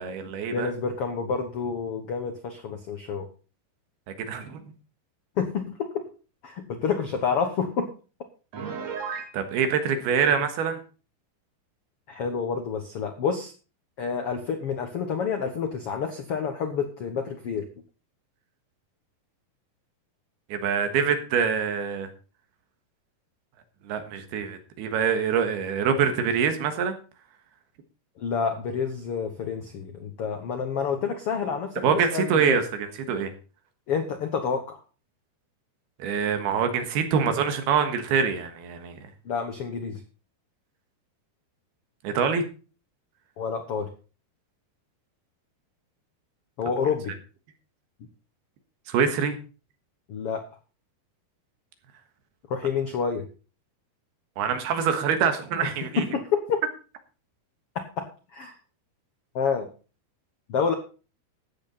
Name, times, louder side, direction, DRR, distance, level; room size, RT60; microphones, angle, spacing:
voice 1, 0.0-0.7 4.3-4.6 9.3-10.8 20.5-22.1 23.9-27.0 31.8-33.3 36.0-39.0 42.0-42.5 48.9-49.4 54.4-56.1, right 6 dB, 75° right, 7 dB, 3.4 m, -25 dB
voice 2, 0.5-3.3 5.4-5.9 6.4-7.9 12.1-13.5 14.0-17.6 28.2-32.6 33.9-34.8 39.2-40.0 43.4-43.9 46.6-47.2 50.1-50.4 52.5-53.3 56.0-56.6 57.7-58.5 59.3-59.7 60.5-60.7, left 6 dB, 90° left, 6 dB, 1.2 m, -28 dB
Piano, 8.5-9.4, right 6 dB, 50° right, 2.6 m, -33 dB
14.0 x 9.0 x 4.2 m, 0.35 s
omnidirectional pair, 4.6 m